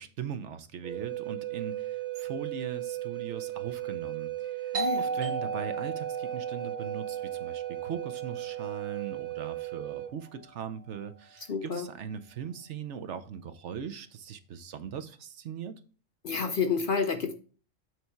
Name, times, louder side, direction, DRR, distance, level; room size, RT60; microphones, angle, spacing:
voice 1, 0.0-15.7, right 7 dB, 65° right, 1.0 m, -40 dB
Wind instrument woodwind instrument, 0.8-10.1, right 16 dB, 45° right, 0.5 m, -36 dB
voice 2, 4.7-5.0 11.5-11.9 16.2-17.3, left 5 dB, 50° left, 0.7 m, -29 dB
Doorbell, 4.7-10.1, right 3 dB, 90° right, 1.9 m, -37 dB
7.9 x 4.2 x 4.5 m
omnidirectional pair, 1.3 m